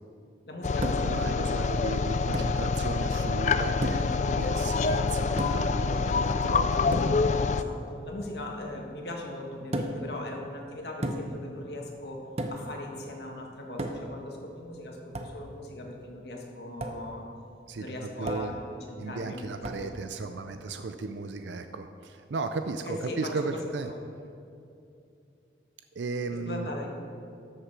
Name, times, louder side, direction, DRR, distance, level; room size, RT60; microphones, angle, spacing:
voice 1, 0.5-1.7 4.2-4.7 7.5-12.2 12.5-17.3 17.8-20.1 22.8-24.0 26.3-27.0, left 1 dB, 70° left, 1 dB, 1.6 m, -39 dB
sound 1, 0.6-7.6, left 4 dB, 40° left, 0.3 m, -26 dB
sound 2, 0.8-1.2 2.3-2.6 3.8-4.2 5.4-5.8 6.9-7.2 9.7-10.1 11.0-11.4 12.4-12.7 13.8-14.2 15.1-15.4 16.8-17.0 18.3-18.6 19.6-19.9, right 1 dB, 35° right, 0.7 m, -33 dB
voice 2, 1.0-6.8 17.7-18.6 19.0-23.9 25.9-26.7, right 3 dB, 85° right, 8 dB, 0.5 m, -35 dB
13.0 x 6.6 x 4.7 m, 2.6 s
head